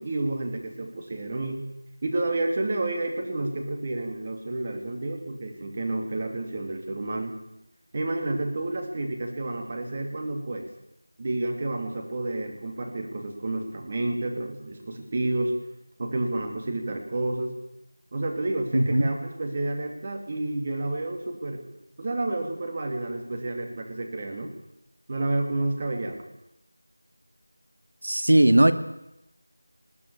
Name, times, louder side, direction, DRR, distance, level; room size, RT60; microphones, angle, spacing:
voice 1, 0.0-1.6 2.0-7.4 7.9-10.7 11.2-15.5 16.0-17.5 18.1-21.6 22.0-24.5 25.1-26.2, right 2 dB, 25° right, 3 dB, 2.8 m, -30 dB
voice 2, 18.7-19.1 28.0-28.7, right 1 dB, 70° right, 10 dB, 2.1 m, -18 dB
20.5 x 17.0 x 8.7 m, 0.86 s
figure-of-eight pair, 175°, 0 cm